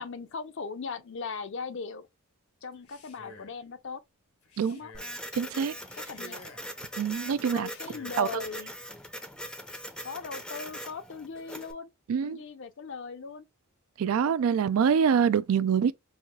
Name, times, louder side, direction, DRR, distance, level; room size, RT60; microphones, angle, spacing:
voice 1, 0.0-2.1 2.6-4.0 4.7-4.9 5.9-6.4 7.4-8.7 10.0-11.9 12.2-13.5, left 5 dB, 55° left, 0.5 m, -39 dB
Male speech man speaking, 2.7-3.6 4.4-5.2 5.8-6.8 7.5-8.3, left 2 dB, 85° left, 1.2 m, -51 dB
Printer, 4.9-11.7, equal, 5° left, 0.5 m, -41 dB
voice 2, 5.4-5.7 7.0-7.7 8.2-8.3 12.1-12.4 14.0-15.9, right 7 dB, 70° right, 0.3 m, -25 dB
5.5 x 2.4 x 2.2 m
head